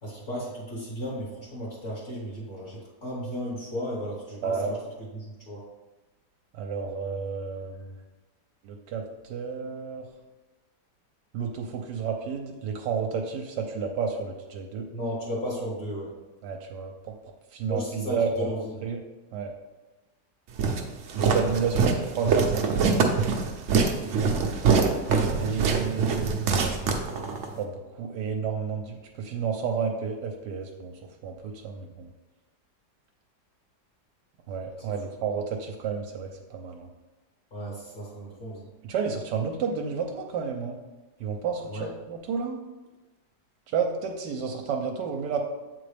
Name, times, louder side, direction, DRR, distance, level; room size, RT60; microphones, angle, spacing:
voice 1, 0.0-4.8 5.1-5.6 14.9-16.1 17.7-18.7 37.5-38.7 41.7-41.9, equal, 45° left, -6 dB, 1.8 m, -34 dB
voice 2, 4.4-4.7 6.5-8.0 8.6-10.1 11.3-14.9 16.4-17.1 17.5-18.5 18.8-19.0 19.3-19.5 21.1-23.2 25.4-26.8 27.1-32.1 34.5-36.9 38.8-40.8 41.2-42.6 43.7-45.4, right 6 dB, 80° right, 2 dB, 1.2 m, -31 dB
Walk footsteps, 20.6-27.5, right 5 dB, 60° right, 0.9 m, -24 dB
7.8 x 3.9 x 3.3 m, 1.1 s
omnidirectional pair, 1.8 m